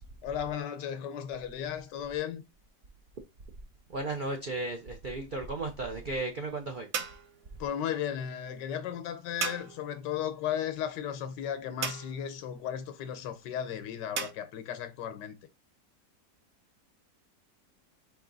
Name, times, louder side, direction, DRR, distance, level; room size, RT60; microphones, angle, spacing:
voice 1, 0.2-2.4 7.6-15.4, left 9 dB, 90° left, 1.4 m, -35 dB
voice 2, 3.9-6.9, right 2 dB, 85° right, 0.4 m, -35 dB
sound 1, 4.7-14.3, right 6 dB, 60° right, 1.1 m, -41 dB
4.6 x 3.0 x 3.9 m
omnidirectional pair, 1.8 m